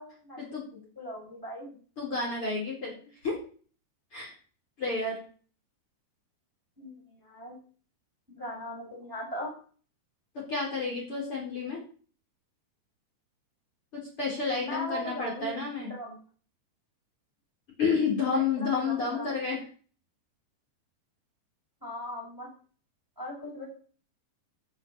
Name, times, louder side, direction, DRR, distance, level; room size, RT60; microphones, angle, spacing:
voice 1, 0.0-1.7 6.8-7.6 8.3-9.5 14.6-16.2 18.3-19.3 21.8-22.5 23.2-23.7, left 1 dB, 5° right, -1 dB, 5.5 m, -39 dB
voice 2, 2.0-3.0 3.2-3.4 4.1-4.3 4.8-5.2 10.3-11.8 13.9-15.9 17.8-19.6, left 4 dB, 30° left, -2 dB, 5.1 m, -30 dB
13.0 x 8.0 x 7.2 m, 0.41 s
omnidirectional pair, 5.3 m